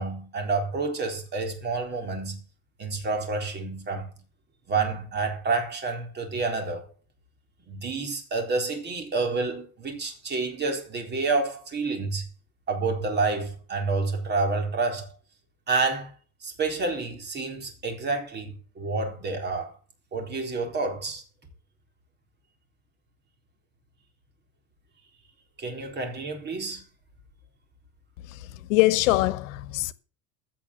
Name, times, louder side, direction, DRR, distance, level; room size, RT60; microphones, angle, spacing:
voice 1, 0.0-2.4 2.8-4.1 4.7-6.9 7.7-12.3 12.7-15.1 15.7-16.1 16.4-19.7 20.1-21.2 25.6-26.8, right 3 dB, 25° right, 3.9 m, -29 dB
voice 2, 28.7-29.9, left 18 dB, 85° left, 1.2 m, -23 dB
15.5 x 6.0 x 7.9 m
supercardioid pair, 140°, 38 cm